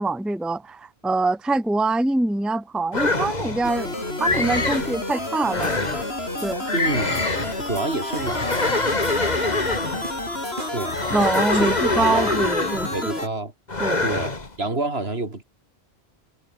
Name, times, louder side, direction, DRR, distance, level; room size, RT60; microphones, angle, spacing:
voice 1, 0.0-5.7 6.4-6.7 11.1-12.9 13.8-14.0, right 2 dB, ahead, 0.8 m, -24 dB
sound 1, 2.9-3.7 4.2-4.9 5.4-6.1 6.7-7.6 8.2-10.1 10.9-13.0 13.7-14.5, left 3 dB, 40° left, 2.4 m, -25 dB
sound 2, 3.6-13.3, left 1 dB, 70° left, 6.0 m, -30 dB
sound 3, 4.7-11.8, right 2 dB, 50° right, 4.0 m, -42 dB
voice 2, 6.7-7.2 7.6-8.7 10.7-11.0 11.5-12.4 12.9-13.5 14.0-15.4, right 2 dB, 70° right, 3.7 m, -28 dB
omnidirectional pair, 1.1 m